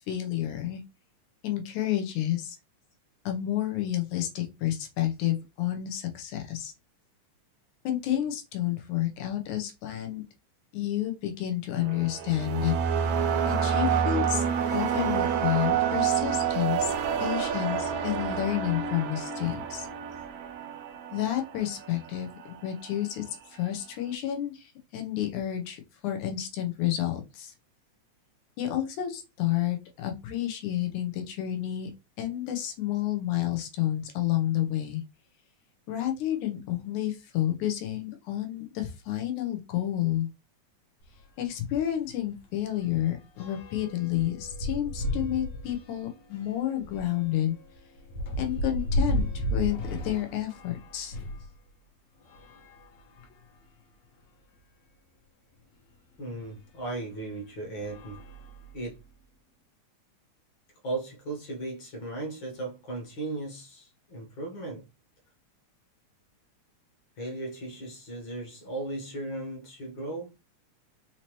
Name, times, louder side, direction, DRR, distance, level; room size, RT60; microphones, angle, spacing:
voice 1, 0.1-0.8 1.4-2.6 3.3-6.7 7.8-10.2 10.7-12.7 13.5-14.4 14.7-16.9 17.2-19.9 21.1-23.2 23.5-27.5 28.6-31.9 32.2-35.0 35.9-40.3 41.4-47.6 48.4-51.2, left 12 dB, 85° left, 2.4 m, -30 dB
sound 1, 11.8-22.0, right 7 dB, 80° right, 2.0 m, -28 dB
sound 2, 41.0-41.2 41.6-41.7 42.0-51.5 52.2-53.5 54.2-54.3 54.6-54.7 56.4-56.5 57.1-57.4 57.8-59.0, equal, 65° left, 2.2 m, -34 dB
voice 2, 56.2-58.2 58.7-59.0 60.8-64.8 67.2-70.3, right 2 dB, 50° left, 1.6 m, -36 dB
5.6 x 2.9 x 3.0 m
omnidirectional pair, 3.4 m